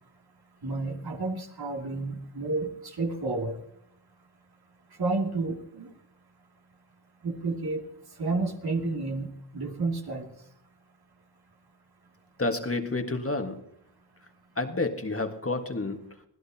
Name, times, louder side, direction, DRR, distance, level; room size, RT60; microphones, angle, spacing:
voice 1, 0.6-3.6 5.0-5.9 7.2-7.9 8.2-10.3, right 3 dB, 60° right, 1 dB, 2.6 m, -31 dB
voice 2, 12.4-13.6 14.5-16.3, left 2 dB, 30° left, 5 dB, 1.7 m, -30 dB
24.5 x 16.0 x 2.9 m, 0.73 s
cardioid pair, 55°, 43 cm